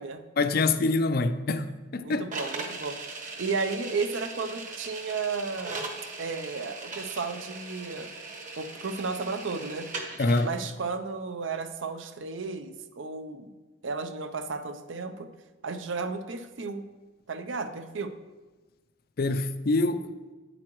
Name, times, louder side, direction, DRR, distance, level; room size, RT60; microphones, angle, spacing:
voice 1, 0.4-2.3 10.2-10.5 19.2-20.0, left 3 dB, 50° left, 0.4 m, -25 dB
voice 2, 2.0-5.9 6.2-8.1 8.6-9.9 10.4-13.5 13.8-15.3 15.6-16.8 17.3-18.1, right 4 dB, 75° right, 0.6 m, -33 dB
sound 1, 2.3-10.5, right 3 dB, 40° right, 1.0 m, -39 dB
8.7 x 7.8 x 3.1 m
head